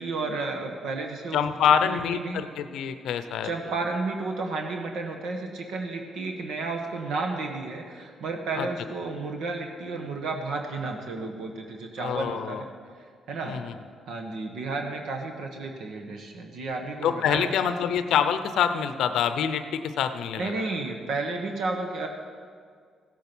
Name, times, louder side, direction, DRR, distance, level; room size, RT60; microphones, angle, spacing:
voice 1, 0.0-1.4 1.8-2.4 3.4-12.6 13.3-13.6 14.1-17.8 20.4-22.1, right 3 dB, 80° right, 3 dB, 1.3 m, -32 dB
voice 2, 1.3-3.5 8.6-8.7 12.0-12.6 13.4-13.8 17.0-20.7, left 8 dB, 80° left, 10 dB, 0.7 m, -26 dB
15.5 x 8.4 x 6.2 m, 2.1 s
cardioid pair, 90°, 0 cm